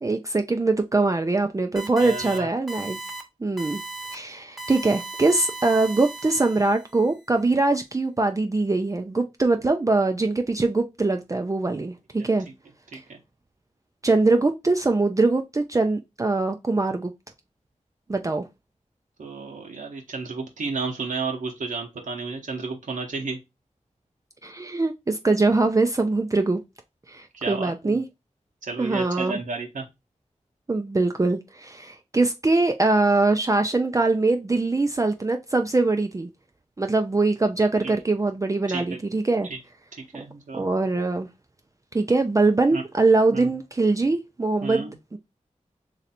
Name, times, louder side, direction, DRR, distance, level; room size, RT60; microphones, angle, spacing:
voice 1, 0.0-3.0 3.4-3.8 4.1-12.5 14.0-17.1 18.1-18.4 24.4-26.6 27.1-28.1 28.8-29.4 30.7-36.3 36.8-39.5 40.5-41.3 41.9-45.2, right 3 dB, 25° right, 0.4 m, -22 dB
sound 1, 1.8-2.4 2.7-3.2 3.6-4.2 4.6-6.9, right 3 dB, ahead, 1.0 m, -37 dB
voice 2, 2.0-2.5 12.9-13.2 19.2-23.4 27.3-28.0 28.6-29.9 37.8-37.9 38.7-39.0 39.4-39.6 39.9-40.7 42.7-42.8 43.3-43.5 44.6-44.9, right 4 dB, 85° right, 0.9 m, -32 dB
3.2 x 2.6 x 4.2 m
wide cardioid pair, 60°, 13 cm